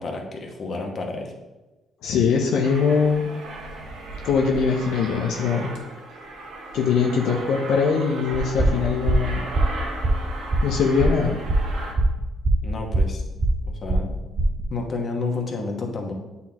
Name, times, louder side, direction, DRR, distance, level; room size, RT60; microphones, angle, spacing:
voice 1, 0.0-1.3 12.6-13.2 13.7-14.1 14.7-16.1, left 3 dB, 45° left, 1 dB, 1.2 m, -30 dB
voice 2, 2.0-3.3 4.2-5.7 6.7-9.4 10.6-11.4, left 5 dB, 85° left, 1 dB, 0.6 m, -22 dB
Aircraft, 2.6-11.9, right 2 dB, 80° right, 1.2 m, -36 dB
sound 1, 8.3-14.7, right 1 dB, 35° right, 0.7 m, -22 dB
8.4 x 4.1 x 2.9 m, 1.1 s
cardioid pair, 90°, 0 cm